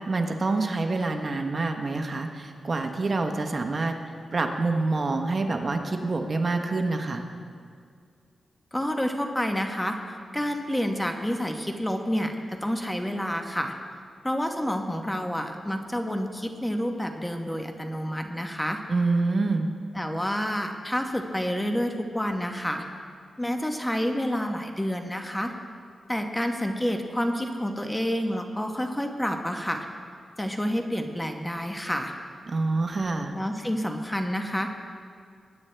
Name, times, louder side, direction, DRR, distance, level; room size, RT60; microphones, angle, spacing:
voice 1, 0.1-3.9 4.3-7.2 18.9-19.7 32.5-33.3, right 3 dB, 40° right, 5 dB, 1.0 m, -26 dB
voice 2, 8.7-10.0 10.3-13.7 14.2-18.8 19.9-22.8 23.4-25.5 26.1-29.9 30.4-32.1 33.3-34.9, equal, 10° left, 4 dB, 1.0 m, -29 dB
20.5 x 9.7 x 3.3 m, 2.2 s
cardioid pair, 85°, 0 cm